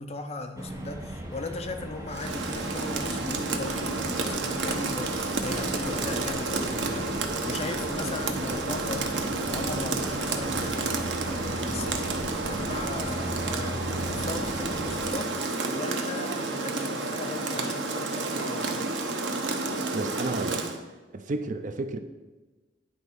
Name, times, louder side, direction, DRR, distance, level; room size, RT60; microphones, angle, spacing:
voice 1, 0.0-12.2 12.5-18.8, left 2 dB, 35° left, 6 dB, 0.6 m, -38 dB
sound 1, 0.6-15.1, right 1 dB, 15° right, 0.9 m, -37 dB
Rain, 2.1-20.8, right 3 dB, 85° right, 0.8 m, -30 dB
voice 2, 19.9-20.7 21.1-22.0, right 2 dB, 45° right, 8 dB, 0.5 m, -31 dB
9.8 x 3.5 x 5.3 m, 1.2 s
head